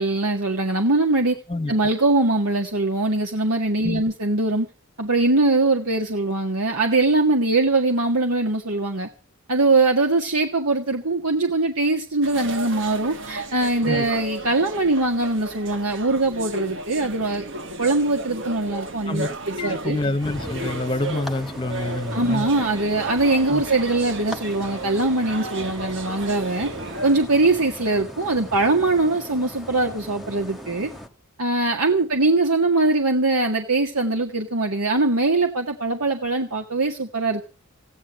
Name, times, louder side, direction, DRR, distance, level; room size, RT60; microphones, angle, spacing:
voice 1, 0.0-1.4 1.7-4.7 5.0-9.1 9.5-17.5 17.8-20.0 22.1-26.7 27.0-30.9 31.4-37.4, right 2 dB, 85° right, 1.8 m, -22 dB
voice 2, 1.5-1.8 3.8-4.0 13.8-14.0 19.1-22.5 23.5-23.6, left 2 dB, 20° left, 0.9 m, -27 dB
sound 1, 12.2-27.3, right 2 dB, 55° right, 1.2 m, -34 dB
sound 2, 20.2-31.1, left 1 dB, ahead, 1.2 m, -39 dB
15.5 x 9.7 x 7.6 m
head